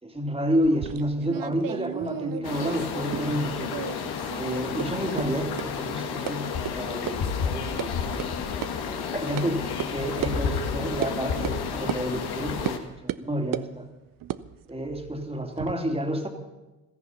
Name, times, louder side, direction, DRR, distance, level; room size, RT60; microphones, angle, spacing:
voice 1, 0.0-3.8 4.4-13.9 14.7-16.3, equal, 15° right, 4 dB, 2.7 m, -30 dB
sound 1, 0.6-3.4 3.7-4.4 4.8-4.9 5.2-5.3 5.6-5.7 6.3-6.4 6.6-6.7 7.1-7.2 7.5-7.9 8.2-8.3 8.6-8.7 9.4-9.5 9.8-9.9 10.2-10.3 11.0-11.1 11.4-11.6 11.9-12.0 12.6-12.8 13.1-13.7 14.2-15.7, right 12 dB, 55° right, 0.7 m, -33 dB
sound 2, 2.4-12.8, left 6 dB, 65° left, 1.8 m, -31 dB
16.0 x 14.0 x 5.6 m, 1.1 s
hypercardioid pair, 55°, 40 cm